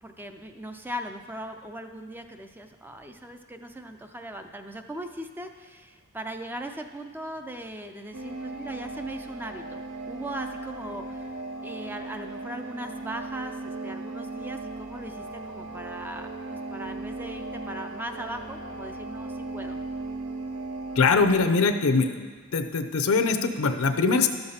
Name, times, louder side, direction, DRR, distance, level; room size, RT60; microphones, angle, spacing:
voice 1, 0.0-19.8, right 1 dB, 10° right, 6 dB, 0.4 m, -39 dB
sound 1, 8.1-21.5, right 2 dB, 75° right, 0.7 m, -37 dB
voice 2, 21.0-22.3 22.5-24.3, left 4 dB, 75° left, 8 dB, 0.6 m, -22 dB
12.0 x 6.7 x 4.2 m, 1.5 s
head